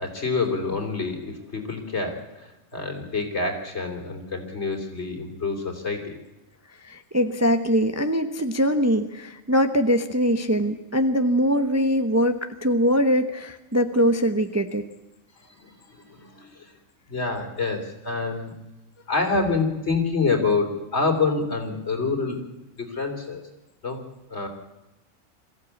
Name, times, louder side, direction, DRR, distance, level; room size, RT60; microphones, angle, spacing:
voice 1, 0.0-6.2 15.5-16.7 17.1-18.5 19.1-22.4 22.8-23.4 23.8-24.0 24.3-24.5, left 4 dB, 50° left, 3 dB, 4.0 m, -27 dB
voice 2, 6.8-14.9, equal, 15° right, 7 dB, 0.9 m, -22 dB
22.5 x 15.5 x 8.5 m, 0.97 s
omnidirectional pair, 1.4 m